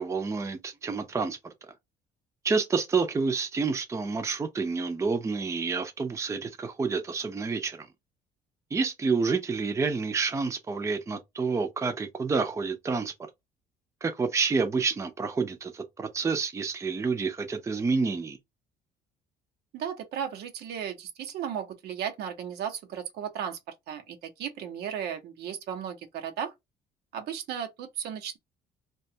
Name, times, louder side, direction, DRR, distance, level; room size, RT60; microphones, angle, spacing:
voice 1, 0.0-1.5 2.4-7.9 8.7-13.1 14.0-18.4, right 4 dB, 15° right, 0.5 m, -29 dB
voice 2, 19.7-26.5 27.1-28.4, right 8 dB, 75° right, 0.7 m, -35 dB
2.4 x 2.3 x 2.7 m
cardioid pair, 110°, 17 cm